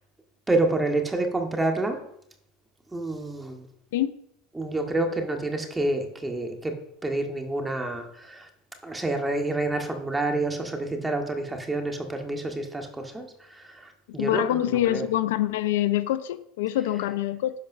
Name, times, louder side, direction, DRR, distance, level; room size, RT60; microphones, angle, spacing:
voice 1, 0.5-2.0 2.9-3.7 4.5-6.7 7.0-8.5 8.8-13.3 14.1-14.6 14.9-15.0, right 2 dB, 10° right, 2.0 m, -28 dB
voice 2, 14.2-17.5, left 13 dB, 80° left, 0.6 m, -25 dB
11.0 x 5.3 x 6.0 m
supercardioid pair, 105°, 0 cm